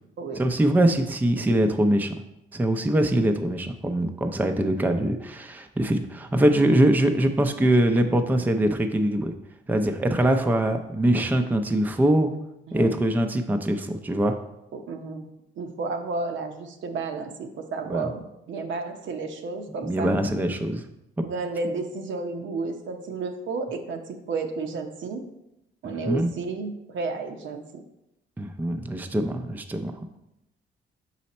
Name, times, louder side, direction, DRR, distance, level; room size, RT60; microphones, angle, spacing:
voice 1, 0.4-2.2 2.5-9.3 9.7-12.3 12.7-14.4 17.9-18.1 19.8-20.8 25.8-26.3 28.4-29.9, right 1 dB, 10° right, 6 dB, 0.5 m, -23 dB
voice 2, 12.7-13.0 14.7-15.3 15.6-20.2 21.2-25.2 25.8-27.8, right 3 dB, 70° right, 4 dB, 0.8 m, -32 dB
5.5 x 4.2 x 4.2 m, 0.87 s
cardioid pair, 90°, 20 cm